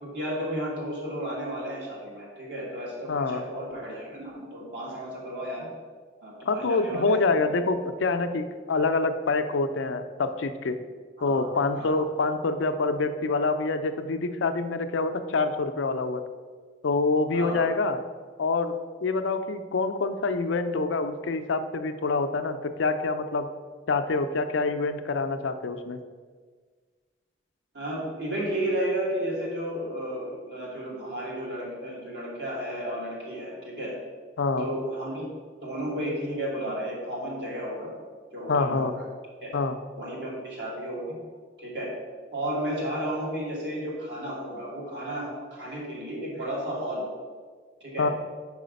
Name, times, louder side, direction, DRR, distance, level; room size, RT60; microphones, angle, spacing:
voice 1, 0.0-5.7 6.2-7.6 11.2-12.0 17.3-17.7 27.7-33.9 34.6-35.3 35.6-37.9 38.3-39.0 39.4-39.5 40.0-41.2 41.6-41.9 42.3-47.1 47.8-48.1, right 1 dB, 65° right, -3 dB, 1.8 m, -33 dB
voice 2, 3.1-3.4 6.5-10.8 11.2-16.2 16.8-18.0 18.4-23.5 23.9-26.0 34.4-34.7 38.5-38.9 39.5-39.7 48.0-48.1, left 3 dB, 85° left, 9 dB, 0.5 m, -26 dB
4.9 x 4.8 x 5.2 m, 1.5 s
head